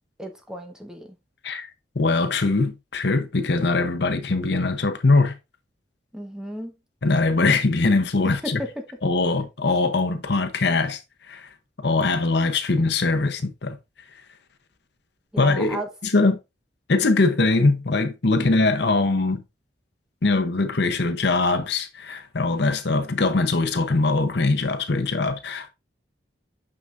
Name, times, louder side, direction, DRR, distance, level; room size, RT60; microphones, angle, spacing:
voice 1, 0.2-1.1 6.1-6.7 8.4-8.7 15.3-15.9, right 1 dB, 5° right, 1.2 m, -34 dB
voice 2, 2.0-5.3 7.0-8.6 9.0-11.0 11.3-11.5 11.8-13.8 15.4-16.4 16.9-19.4 20.2-25.7, left 3 dB, 65° left, 0.8 m, -22 dB
6.3 x 6.0 x 2.5 m
head